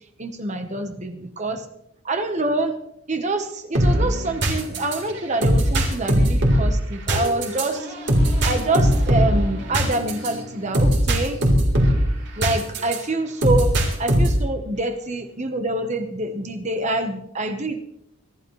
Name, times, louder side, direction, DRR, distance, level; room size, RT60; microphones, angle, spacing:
voice 1, 0.2-1.6 2.0-2.8 3.1-7.9 8.4-11.4 12.4-13.7 14.0-17.8, right 2 dB, 30° right, 7 dB, 1.1 m, -26 dB
sound 1, 3.7-13.0 13.4-14.5, equal, 50° right, 3.6 m, -20 dB
26.0 x 12.5 x 3.2 m, 0.76 s
head